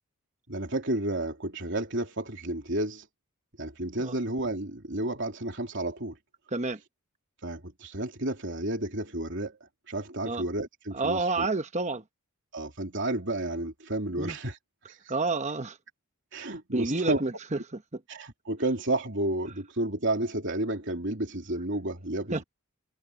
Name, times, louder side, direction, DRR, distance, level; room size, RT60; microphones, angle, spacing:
voice 1, 0.5-3.1 3.6-6.2 7.4-11.5 12.5-14.6 14.9-15.1 16.3-17.2 18.1-22.4, right 1 dB, 55° right, 3.4 m, -31 dB
voice 2, 10.9-12.0 14.2-14.4 15.1-15.8 16.7-17.3 17.9-18.0 22.3-22.4, right 3 dB, 30° right, 1.0 m, -29 dB
head